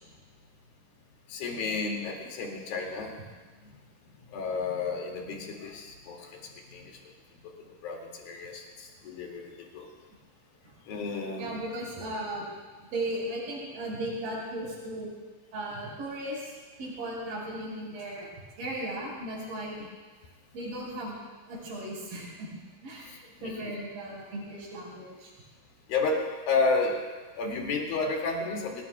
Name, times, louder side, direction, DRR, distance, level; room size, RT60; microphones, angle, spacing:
voice 1, 1.3-3.2 3.6-3.7 4.3-7.0 7.8-9.9 10.9-11.5 23.0-23.7 25.9-27.0 27.4-28.8, left 4 dB, 55° left, 0 dB, 3.7 m, -32 dB
voice 2, 11.4-12.5 12.8-15.1 15.5-16.5 16.8-18.3 18.6-19.8 20.5-21.2 21.5-22.6 22.8-23.1 23.4-25.3, right 1 dB, 50° right, -4 dB, 6.7 m, -36 dB
25.5 x 20.0 x 2.3 m, 1.3 s
omnidirectional pair, 5.5 m